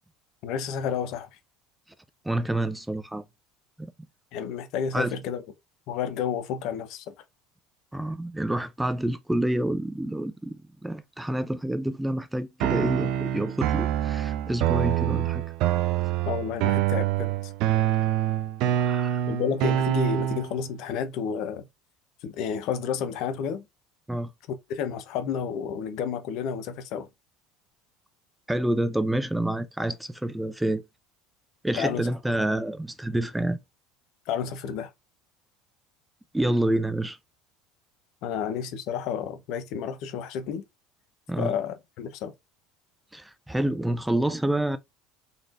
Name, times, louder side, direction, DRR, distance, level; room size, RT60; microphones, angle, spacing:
voice 1, 0.4-1.3 4.3-5.4 5.9-7.1 16.2-17.5 19.3-21.6 22.2-23.7 24.5-27.1 31.8-32.1 34.3-34.9 38.2-40.6 41.4-42.3, left 7 dB, 65° left, 0.9 m, -31 dB
voice 2, 2.2-3.2 3.8-3.9 4.9-5.1 7.9-15.4 18.7-19.2 24.1-24.3 28.5-30.8 31.6-33.6 36.3-37.2 41.3-41.5 43.1-44.8, right 1 dB, 5° right, 0.4 m, -28 dB
sound 1, 12.6-20.6, right 12 dB, 65° right, 0.5 m, -26 dB
4.0 x 3.1 x 2.5 m
supercardioid pair, 115°, 0 cm